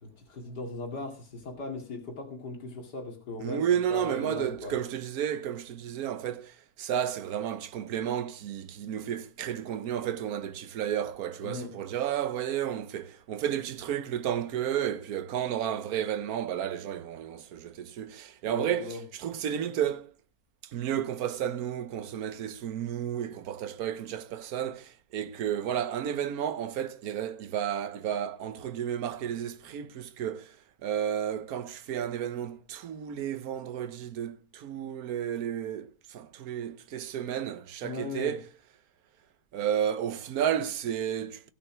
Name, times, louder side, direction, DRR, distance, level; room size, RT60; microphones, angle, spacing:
voice 1, 0.0-3.6 3.9-4.8 11.4-11.7 18.5-19.0 37.8-38.4, left 2 dB, 80° left, 2.8 m, -38 dB
voice 2, 3.4-20.1 20.6-30.6 30.8-38.5 39.5-41.5, right 9 dB, 65° right, 1.3 m, -32 dB
16.5 x 5.7 x 6.1 m
omnidirectional pair, 1.8 m